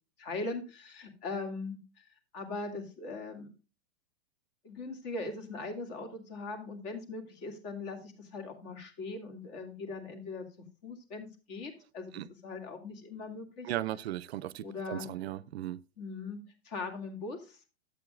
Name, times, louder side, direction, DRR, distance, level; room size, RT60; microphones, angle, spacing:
voice 1, 0.2-2.1 2.3-3.5 4.6-10.5 10.8-13.7 14.6-15.1 16.0-17.7, left 3 dB, 40° left, 2.3 m, -40 dB
voice 2, 13.6-15.8, right 13 dB, 75° right, 0.6 m, -36 dB
12.0 x 8.2 x 2.5 m
supercardioid pair, 175°, 32 cm